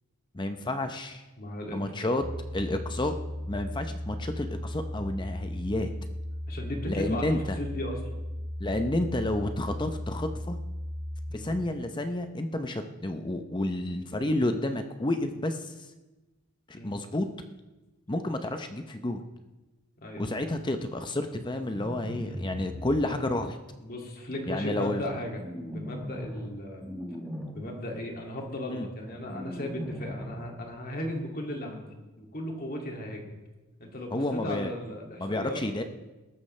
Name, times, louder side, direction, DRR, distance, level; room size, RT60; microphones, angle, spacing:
voice 1, 0.3-1.2 1.7-2.2 2.5-3.2 3.5-5.9 6.9-7.6 8.6-10.6 11.3-15.7 16.7-17.3 18.1-19.2 20.2-23.6 24.5-25.0 28.7-28.9 34.1-34.7 35.2-35.8, left 1 dB, 20° left, 7 dB, 0.7 m, -30 dB
voice 2, 1.4-2.1 6.5-8.0 11.3-11.5 16.8-17.0 20.0-20.2 23.8-26.9 27.5-31.8 32.2-33.2 33.8-35.6, left 1 dB, 40° left, 1 dB, 2.4 m, -36 dB
sound 1, 2.2-11.4, left 1 dB, 35° right, 2.0 m, -36 dB
sound 2, 21.6-23.0 25.4-26.5 26.8-27.5 29.3-30.5, equal, 5° left, 1.5 m, -38 dB
20.5 x 13.0 x 3.3 m, 1.1 s
head